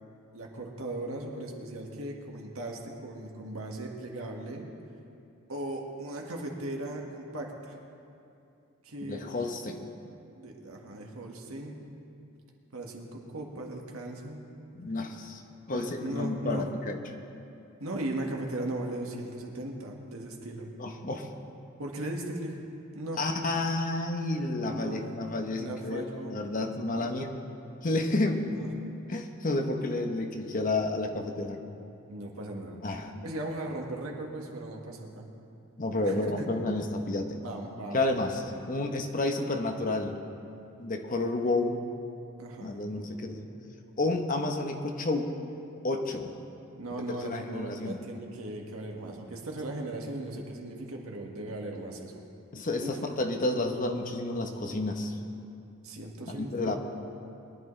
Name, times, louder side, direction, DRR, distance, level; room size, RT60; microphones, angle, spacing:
voice 1, 0.3-4.7 5.5-7.8 8.8-9.3 10.3-11.8 12.7-14.4 15.7-16.6 17.8-20.7 21.8-22.6 22.9-23.2 24.6-25.0 25.5-26.3 26.9-27.1 28.4-28.7 32.1-32.8 33.2-35.3 36.0-36.5 37.3-38.3 42.4-42.8 46.8-52.2 52.8-53.0 55.8-56.8, right 1 dB, 90° right, 0 dB, 1.7 m, -38 dB
voice 2, 9.0-9.9 14.7-15.4 15.7-17.0 20.8-21.3 23.2-27.3 27.8-28.5 29.1-31.7 32.8-33.3 35.8-37.4 37.9-40.2 40.8-41.8 42.6-43.5 44.0-45.3 45.8-46.3 47.1-48.0 52.5-55.2 56.3-56.8, left 2 dB, 40° left, 4 dB, 0.9 m, -30 dB
22.0 x 11.5 x 3.3 m, 2.7 s
head